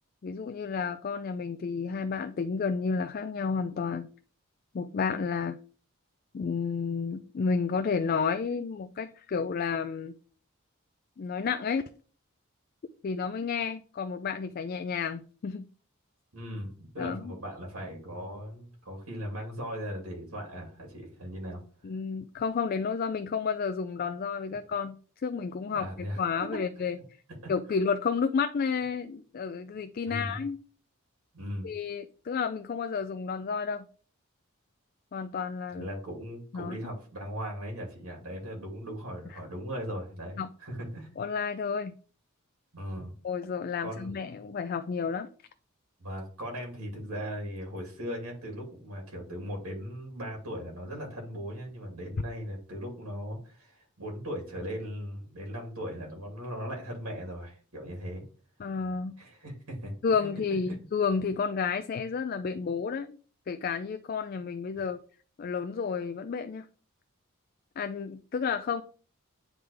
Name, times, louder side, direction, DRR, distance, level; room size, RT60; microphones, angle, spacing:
voice 1, 0.2-4.1 4.7-5.6 6.3-10.1 11.2-11.8 13.0-15.7 17.0-17.3 21.8-27.0 27.5-30.6 31.6-33.9 35.1-35.9 36.5-36.8 40.4-40.5 41.2-41.9 43.2-45.3 58.6-59.2 60.0-63.2 63.5-65.0 65.4-66.7 67.8-68.8, left 5 dB, 45° left, 0.3 m, -31 dB
voice 2, 16.3-21.6 25.7-26.2 27.4-27.5 30.1-30.4 31.3-31.7 35.7-41.1 42.7-43.1 43.8-44.2 46.0-58.2 59.2-59.9 60.2-60.3 60.7-60.9 64.7-64.8, equal, 80° right, 2.4 m, -38 dB
9.4 x 3.7 x 3.3 m
head